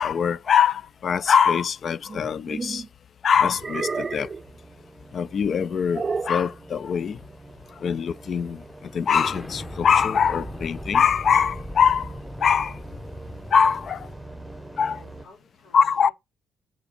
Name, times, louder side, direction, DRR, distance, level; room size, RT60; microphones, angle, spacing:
voice 1, 0.0-2.8 3.2-4.3 5.1-7.2 7.8-8.6 8.9-12.1 12.4-12.8 13.5-14.1 14.8-15.0 15.7-16.1, left 7 dB, 55° left, 0.4 m, -22 dB
sound 1, 2.1-2.9 3.6-4.4 5.9-6.5, right 4 dB, 35° right, 0.4 m, -30 dB
sound 2, 3.8-15.3, right 2 dB, 5° right, 1.0 m, -44 dB
Explosion, 9.1-14.6, left 1 dB, 15° left, 1.3 m, -39 dB
voice 2, 14.7-16.1, left 3 dB, 80° left, 5.2 m, -52 dB
6.9 x 6.0 x 4.2 m
cardioid pair, 90°, 0 cm